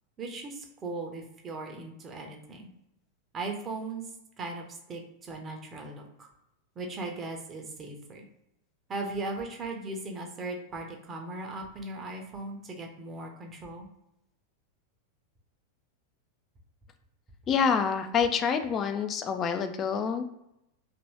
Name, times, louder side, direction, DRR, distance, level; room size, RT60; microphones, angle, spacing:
voice 1, 0.2-2.7 3.3-4.1 4.4-6.3 6.8-8.2 8.9-13.9, right 2 dB, 25° right, 2 dB, 0.7 m, -38 dB
voice 2, 17.5-20.2, left 6 dB, 30° left, 7 dB, 0.3 m, -27 dB
2.9 x 2.6 x 3.0 m, 0.83 s
figure-of-eight pair, 90°, 0 cm